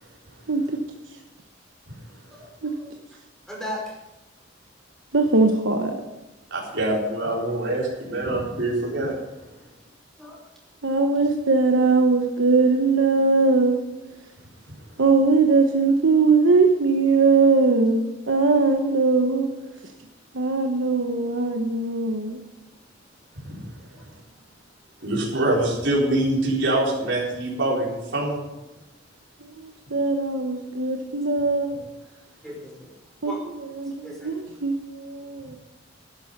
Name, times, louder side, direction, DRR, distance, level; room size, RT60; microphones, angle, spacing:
voice 1, 0.5-0.8 1.1-1.2 2.6-2.7 5.1-6.0 10.8-13.7 15.0-19.5 20.3-22.4 29.4-31.9 33.2-33.3 33.8-35.6, right 3 dB, 90° right, 3 dB, 1.2 m, -20 dB
voice 2, 3.5-3.9 10.2-10.4 23.9-24.0 32.4-32.9 33.2-33.4 33.8-34.5 35.2-35.3, left 1 dB, 5° left, -3 dB, 5.3 m, -37 dB
voice 3, 6.5-9.2 14.7-14.8 23.4-23.7 25.0-28.4, right 1 dB, 70° right, -4 dB, 4.1 m, -24 dB
12.0 x 11.5 x 5.4 m, 1.0 s
head